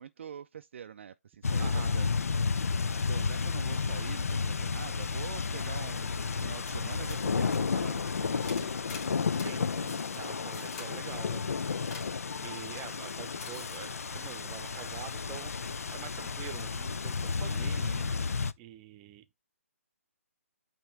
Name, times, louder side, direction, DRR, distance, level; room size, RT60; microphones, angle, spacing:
voice 1, 0.0-2.1 3.0-8.8 12.3-12.4 17.2-18.1, right 8 dB, 50° right, 0.4 m, -45 dB
sound 1, 1.4-18.5, left 5 dB, 75° left, 0.5 m, -32 dB
voice 2, 1.6-2.0 9.4-12.2 12.4-18.3 18.6-19.4, right 11 dB, 20° right, 0.8 m, -46 dB
sound 2, 6.6-6.8 7.1-7.2 7.5-7.6 8.4-9.5 9.9-10.2 10.5-10.9 11.9-12.1 13.4-13.8, left 4 dB, 20° left, 2.7 m, -45 dB
8.7 x 3.0 x 4.6 m
figure-of-eight pair, 145°, 8 cm